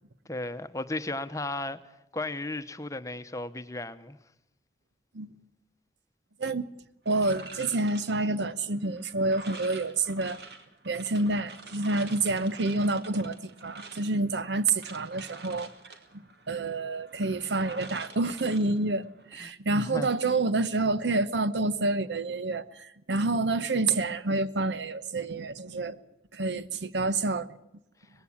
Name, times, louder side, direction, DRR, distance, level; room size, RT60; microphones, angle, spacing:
voice 1, 0.3-1.8 2.1-4.2 19.4-20.1, left 2 dB, 20° left, 0.9 m, -35 dB
sound 1, 7.1-19.4, right 3 dB, 70° right, 2.3 m, -47 dB
voice 2, 7.1-10.4 10.8-15.7 16.5-26.0 26.3-27.5, right 2 dB, 90° right, 1.0 m, -28 dB
20.5 x 16.0 x 8.6 m
head